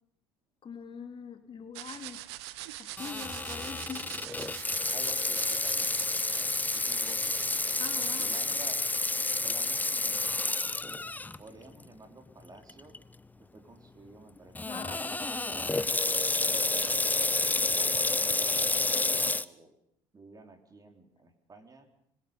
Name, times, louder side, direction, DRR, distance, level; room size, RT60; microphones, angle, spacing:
voice 1, 0.6-2.3 2.8-4.2 4.8-4.9 7.8-8.3 14.7-15.1, left 6 dB, 35° left, 6 dB, 3.0 m, -43 dB
sound 1, 1.7-8.4, right 16 dB, 75° right, 1.2 m, -44 dB
Water tap faucet / Sink (filling or washing), 3.0-11.4 11.8-11.9 12.7-13.0 14.5-19.4, left 2 dB, 10° left, 0.9 m, -30 dB
voice 2, 4.9-7.7 8.2-8.8 9.4-10.3 11.4-13.0 13.4-17.0 17.7-19.7 20.1-21.9, right 3 dB, 25° right, 5 dB, 4.4 m, -52 dB
25.5 x 22.5 x 5.4 m, 0.70 s
hypercardioid pair, 70°, 14 cm